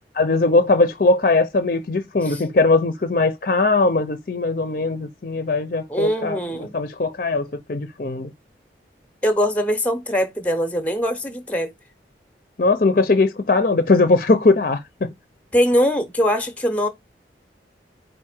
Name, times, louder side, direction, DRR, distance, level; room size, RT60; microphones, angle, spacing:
voice 1, 0.2-8.3 12.6-15.1, left 3 dB, 50° left, 0.5 m, -20 dB
voice 2, 5.9-6.7 9.2-11.7 15.5-16.9, equal, 10° left, 0.7 m, -22 dB
4.8 x 2.6 x 4.3 m
head